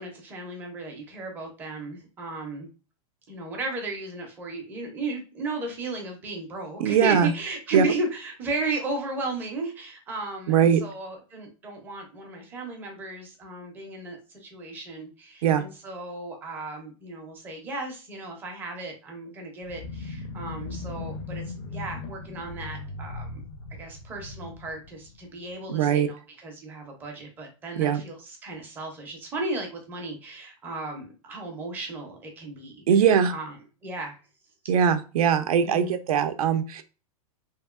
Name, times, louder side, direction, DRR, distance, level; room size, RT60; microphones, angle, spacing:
voice 1, 0.0-2.7 3.3-23.4 23.8-33.6 33.8-34.1 35.6-36.0, right 2 dB, 10° right, 1 dB, 0.4 m, -35 dB
voice 2, 6.8-7.3 7.7-7.8 10.5-10.8 15.4-15.6 25.7-26.1 27.8-28.0 32.9-33.3 34.7-36.8, right 8 dB, 85° right, 9 dB, 0.4 m, -21 dB
sound 1, 19.6-25.6, left 3 dB, 45° left, 0.4 m, -38 dB
2.8 x 2.7 x 2.3 m, 0.34 s
supercardioid pair, 175°, 18 cm